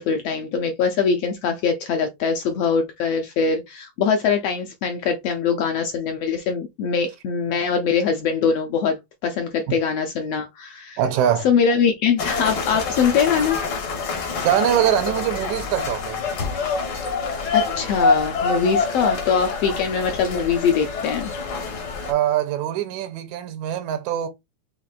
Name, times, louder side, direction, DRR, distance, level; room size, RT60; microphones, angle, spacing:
voice 1, 0.0-11.0 11.4-13.6 17.2-21.3, left 6 dB, 75° left, 1.4 m, -22 dB
voice 2, 11.0-11.5 14.4-16.2 19.7-19.8 22.0-24.3, right 10 dB, 85° right, 2.0 m, -23 dB
sound 1, 12.2-22.1, left 4 dB, 60° left, 1.0 m, -26 dB
5.9 x 3.0 x 2.4 m
omnidirectional pair, 3.3 m